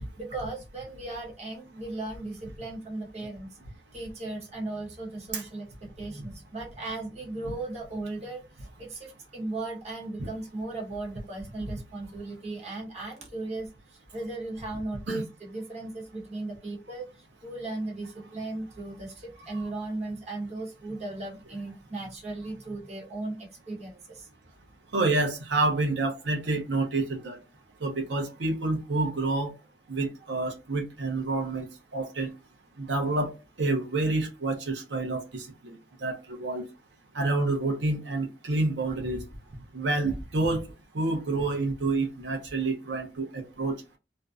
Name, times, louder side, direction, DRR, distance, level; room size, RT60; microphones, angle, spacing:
voice 1, 0.2-3.6 3.9-24.3, right 2 dB, 40° right, 1.0 m, -37 dB
voice 2, 24.9-27.4 27.8-29.5 29.9-31.7 31.9-32.3 32.8-33.3 33.6-35.8 36.0-36.6 37.1-39.2 39.7-40.6 40.9-43.8, right 2 dB, 80° right, 0.6 m, -28 dB
2.5 x 2.1 x 2.4 m
head